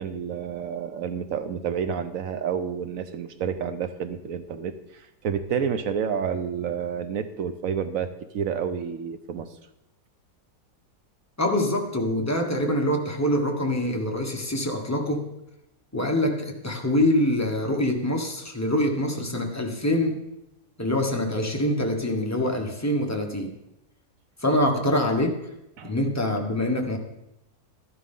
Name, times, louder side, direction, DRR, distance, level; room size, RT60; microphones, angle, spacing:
voice 1, 0.0-9.5 24.6-24.7 25.8-25.9, right 7 dB, 65° right, 10 dB, 1.0 m, -29 dB
voice 2, 11.4-15.3 15.9-20.2 20.8-23.6 24.4-25.5 25.8-27.0, left 1 dB, 10° left, 1 dB, 1.1 m, -25 dB
12.5 x 11.5 x 3.8 m, 0.89 s
omnidirectional pair, 1.7 m